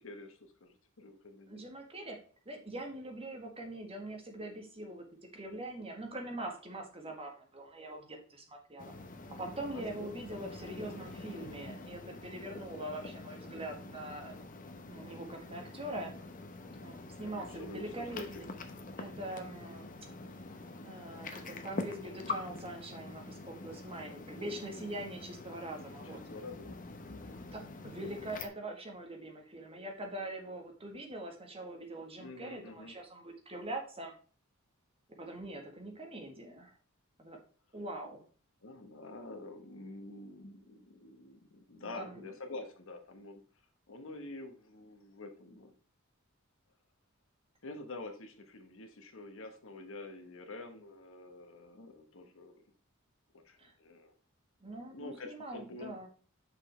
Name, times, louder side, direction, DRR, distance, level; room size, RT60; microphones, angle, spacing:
voice 1, 0.0-1.7 9.5-9.8 17.5-18.5 26.0-27.4 32.2-33.0 38.6-43.4 43.9-45.7 47.6-52.6 53.4-54.2 54.9-56.1, left 2 dB, 65° left, 6 dB, 1.2 m, -47 dB
voice 2, 1.5-2.2 2.4-5.0 5.3-8.9 9.4-14.4 14.9-16.1 16.8-18.4 19.0-19.8 20.8-26.2 27.5-34.1 35.2-36.7 37.2-37.4 37.7-38.2 41.8-42.2 53.6-53.7 54.6-56.1, right 1 dB, 25° right, 2 dB, 1.7 m, -43 dB
sound 1, 8.8-28.5, left 3 dB, 40° left, 0.9 m, -45 dB
6.2 x 5.3 x 4.4 m, 0.40 s
head